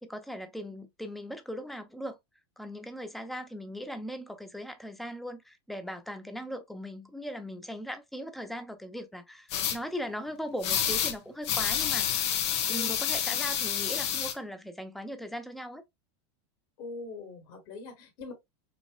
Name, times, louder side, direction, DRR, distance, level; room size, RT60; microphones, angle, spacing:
voice 1, 0.0-2.2 2.6-12.4 12.7-15.8, equal, ahead, 0.6 m, -39 dB
sound 1, 9.5-9.8 10.6-11.1 11.4-14.3, left 9 dB, 70° left, 1.2 m, -28 dB
voice 2, 16.8-18.3, left 2 dB, 50° left, 1.9 m, -42 dB
5.1 x 3.0 x 2.3 m
supercardioid pair, 140°, 15 cm